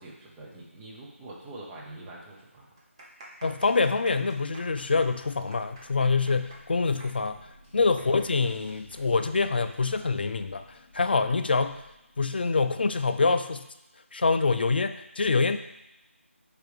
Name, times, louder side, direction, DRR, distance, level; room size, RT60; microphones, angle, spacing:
voice 1, 0.0-2.7 7.7-8.0, right 2 dB, 5° right, -4 dB, 0.5 m, -45 dB
sound 1, 2.6-9.9 10.2-10.3 11.0-11.3, right 1 dB, 20° right, 0.9 m, -50 dB
voice 2, 3.4-7.4 7.7-11.8 12.2-13.7 14.1-15.6, left 4 dB, 45° left, 9 dB, 0.4 m, -25 dB
sound 2, 4.3-12.8, equal, 15° left, 1.8 m, -56 dB
4.8 x 4.6 x 4.9 m, 0.88 s
figure-of-eight pair, 170°, 7 cm